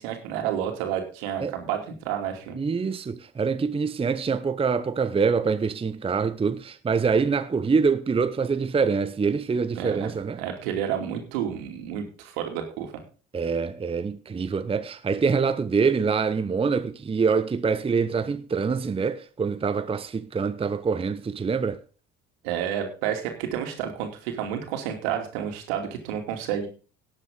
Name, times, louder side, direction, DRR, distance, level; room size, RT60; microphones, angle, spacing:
voice 1, 0.0-2.6 9.7-10.1 10.4-13.0 22.4-26.7, right 9 dB, 70° right, 2.8 m, -30 dB
voice 2, 2.6-10.4 13.3-21.8, right 5 dB, 15° right, 0.8 m, -25 dB
18.5 x 7.4 x 3.7 m
figure-of-eight pair, 60°, 32 cm